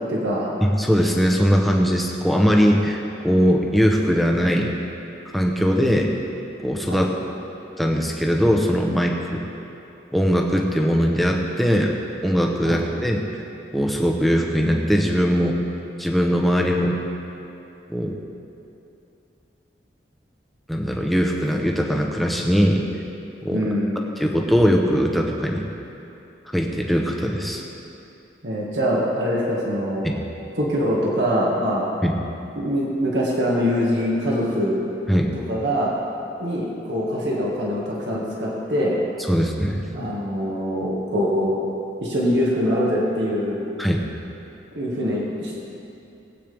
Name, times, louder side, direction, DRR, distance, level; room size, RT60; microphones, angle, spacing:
voice 1, 0.1-0.5 6.9-7.0 12.6-12.8 23.5-24.0 28.4-30.1 30.6-31.9 32.6-34.8 35.5-36.0 36.4-39.0 39.9-41.6 42.0-43.6 44.7-45.6, equal, 75° right, -4 dB, 1.9 m, -23 dB
voice 2, 0.6-4.7 5.3-6.1 6.6-7.1 7.8-9.4 10.1-11.9 12.2-13.2 13.7-15.6 16.0-17.0 17.9-18.2 20.7-22.8 23.4-23.6 24.2-25.6 26.5-27.6 30.0-30.2 32.0-32.1 35.1-35.3 39.3-39.8 43.8-44.0, equal, ahead, 0 dB, 0.9 m, -20 dB
19.0 x 8.7 x 3.5 m, 2.8 s
head